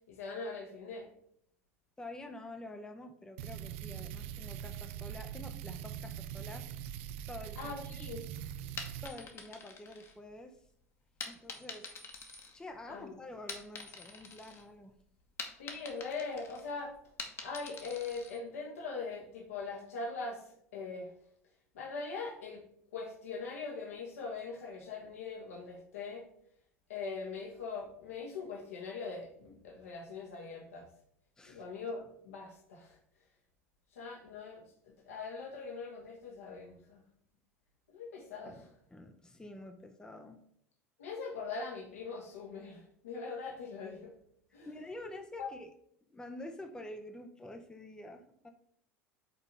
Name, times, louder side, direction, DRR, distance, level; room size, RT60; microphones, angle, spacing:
voice 1, 0.1-1.1 7.6-8.2 12.9-13.1 15.6-16.9 17.4-20.4 20.7-21.1 21.7-22.6 22.9-26.3 26.9-30.9 31.5-33.0 33.9-37.0 37.9-38.6 41.0-44.1 44.5-44.7 45.4-45.5, left 4 dB, 70° left, 1 dB, 1.5 m, -41 dB
voice 2, 2.0-6.7 7.3-8.0 9.0-10.6 11.2-11.9 12.5-14.9 31.4-31.6 38.4-40.4 44.7-45.7 46.1-48.5, left 1 dB, 10° left, 6 dB, 0.7 m, -48 dB
sound 1, 3.4-9.1, right 10 dB, 60° right, 0.4 m, -42 dB
sound 2, 8.6-10.6 11.2-13.0 13.3-14.6 15.0-18.4, left 4 dB, 35° left, 1.1 m, -46 dB
5.4 x 4.1 x 5.4 m, 0.67 s
figure-of-eight pair, 75°, 8 cm